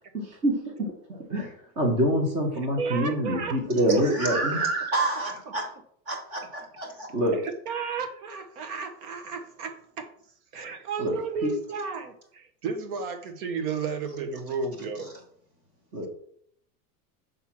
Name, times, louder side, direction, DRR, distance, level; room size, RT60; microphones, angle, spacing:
voice 1, 0.1-0.9 1.3-4.7 7.1-7.4 11.0-11.1 11.4-11.5 15.9-16.1, equal, 15° right, 0 dB, 0.5 m, -26 dB
voice 2, 2.8-3.6 5.5-5.6 7.3-10.1 10.5-15.1, right 4 dB, 70° right, 7 dB, 1.3 m, -33 dB
voice 3, 3.9-5.7 6.1-7.1, right 3 dB, 30° right, 2 dB, 1.6 m, -28 dB
5.9 x 3.7 x 5.9 m, 0.65 s
supercardioid pair, 175°, 47 cm